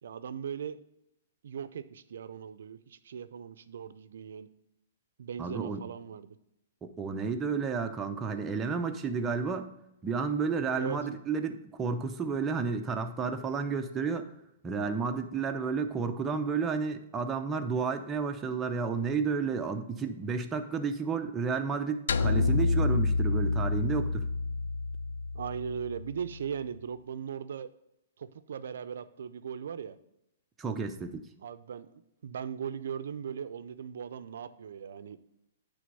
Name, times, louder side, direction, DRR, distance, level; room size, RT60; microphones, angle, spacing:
voice 1, 0.0-0.8 1.4-4.5 5.2-6.4 10.8-11.0 25.3-27.7 28.2-30.0 31.4-35.2, right 7 dB, 75° right, 13 dB, 0.5 m, -38 dB
voice 2, 5.4-5.8 6.8-9.7 10.0-14.3 14.6-24.2 30.6-31.2, right 5 dB, 15° right, 5 dB, 0.7 m, -31 dB
sound 1, 22.1-26.5, left 3 dB, 75° left, 0.4 m, -29 dB
9.3 x 3.5 x 5.4 m, 0.83 s
hypercardioid pair, 140°, 0 cm